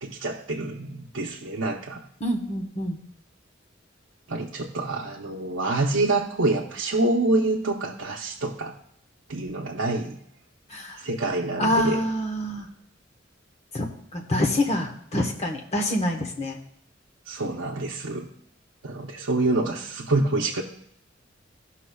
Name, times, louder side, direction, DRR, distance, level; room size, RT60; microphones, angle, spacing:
voice 1, 0.0-2.0 4.3-8.7 9.3-10.2 11.0-12.0 17.3-18.3 18.8-20.6, right 2 dB, 75° right, -1 dB, 0.7 m, -26 dB
voice 2, 2.2-3.0 10.7-11.0 11.6-12.7 13.7-13.9 14.1-16.6, left 1 dB, 35° left, 2 dB, 1.1 m, -26 dB
14.5 x 5.8 x 2.3 m, 0.73 s
head